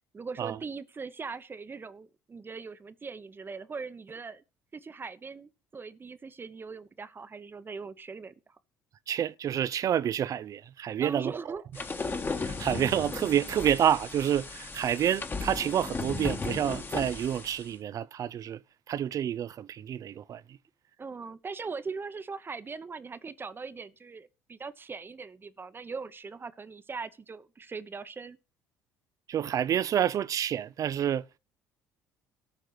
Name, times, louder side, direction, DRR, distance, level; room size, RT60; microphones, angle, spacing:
voice 1, 0.1-4.4 4.7-8.5 11.0-11.9 21.0-28.4, right 4 dB, 30° right, 1.0 m, -40 dB
voice 2, 9.1-11.3 12.4-18.6 18.9-20.6 29.3-31.4, right 10 dB, 50° right, 0.5 m, -28 dB
sound 1, 11.7-17.7, left 4 dB, 25° left, 1.7 m, -36 dB
13.0 x 4.4 x 8.1 m
hypercardioid pair, 65°, 8 cm